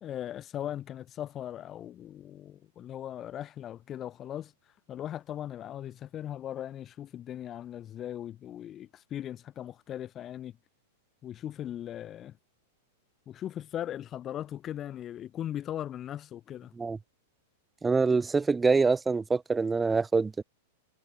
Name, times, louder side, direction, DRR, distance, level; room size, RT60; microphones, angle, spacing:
voice 1, 0.0-4.5 4.9-10.5 11.2-12.3 13.3-16.7, left 11 dB, 25° left, 1.4 m, -38 dB
voice 2, 17.8-20.4, right 4 dB, 10° right, 0.4 m, -25 dB
figure-of-eight pair, 95°, 0 cm